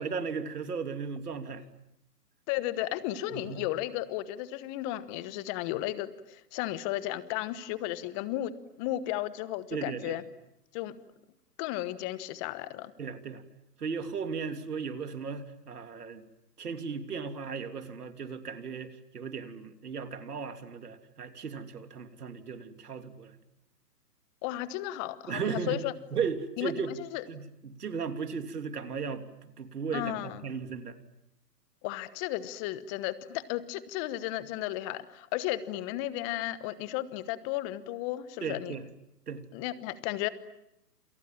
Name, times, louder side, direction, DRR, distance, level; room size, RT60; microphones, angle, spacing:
voice 1, 0.0-1.6 3.3-3.6 9.7-10.2 13.0-13.4 13.8-16.2 16.6-23.3 25.3-25.8 26.1-27.0 27.3-29.2 29.6-31.0 38.4-38.8 39.3-39.4, right 5 dB, 70° right, 8 dB, 3.2 m, -36 dB
voice 2, 2.5-10.2 10.7-11.0 11.6-12.9 24.4-25.9 26.6-26.7 27.1-27.2 29.9-30.4 31.8-38.7 39.5-40.3, left 15 dB, 20° left, 16 dB, 1.1 m, -34 dB
28.0 x 28.0 x 7.5 m, 0.83 s
hypercardioid pair, 140°, 48 cm